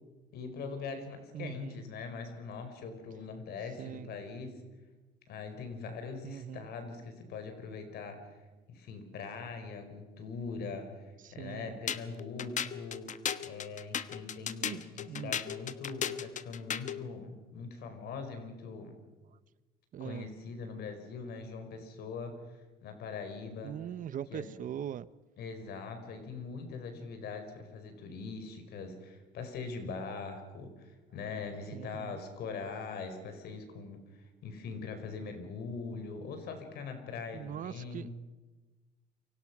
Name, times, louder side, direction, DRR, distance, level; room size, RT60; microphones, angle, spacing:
voice 1, 0.3-4.5 5.3-8.4 8.7-13.1 13.4-19.0 20.0-23.8 24.3-24.6 25.4-38.1, left 4 dB, 70° left, 7 dB, 5.0 m, -42 dB
voice 2, 1.3-1.8 3.8-4.1 6.2-6.7 11.2-11.8 14.6-15.4 19.9-20.3 23.6-25.1 31.7-32.2 37.3-38.1, right 10 dB, 50° right, 17 dB, 0.9 m, -41 dB
sound 1, 11.9-17.0, left 9 dB, 45° left, 1.2 m, -36 dB
28.5 x 24.5 x 6.1 m, 1.2 s
cardioid pair, 110°, 17 cm